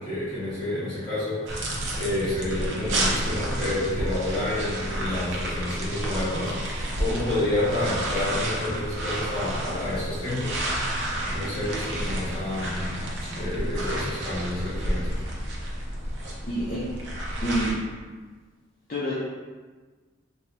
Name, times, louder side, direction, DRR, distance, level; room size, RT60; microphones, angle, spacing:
voice 1, 0.0-10.6 11.3-12.9 13.3-15.2, left 1 dB, 30° left, -9 dB, 1.4 m, -29 dB
sound 1, 1.5-17.7, right 1 dB, 70° right, 0.6 m, -30 dB
voice 2, 16.4-16.9 17.4-17.8 18.9-19.1, right 1 dB, 45° left, -7 dB, 0.5 m, -27 dB
2.9 x 2.6 x 3.2 m, 1.4 s
head